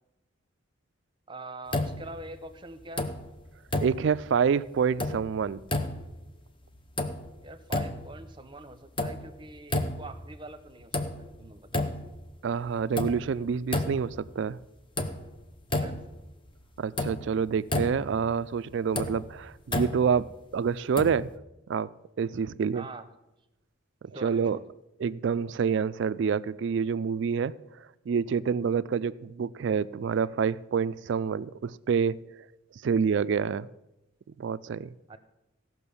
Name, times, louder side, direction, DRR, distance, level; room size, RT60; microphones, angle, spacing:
voice 1, 1.3-3.1 7.4-11.8 15.7-16.0 22.7-23.1 24.1-24.6 35.1-35.2, right 2 dB, 25° right, 9 dB, 0.7 m, -44 dB
sound 1, 1.7-2.4 2.8-3.4 3.7-4.4 4.8-5.4 5.6-6.3 6.7-7.4 7.7-8.3 8.7-9.4 9.7-10.3 10.7-11.4 11.7-12.3 12.7-14.2 14.6-14.7 15.0-16.2 16.5-16.6 17.0-18.2 18.7-20.2 21.0-21.4, left 2 dB, 25° left, 0.7 m, -32 dB
voice 2, 3.8-5.6 12.4-14.6 16.8-21.3 21.7-21.9 22.2-22.8 24.0-24.6 25.0-27.5 28.1-32.2 32.8-33.7 34.4-34.9, right 6 dB, 60° right, 17 dB, 0.3 m, -27 dB
15.5 x 6.0 x 7.0 m, 0.93 s
head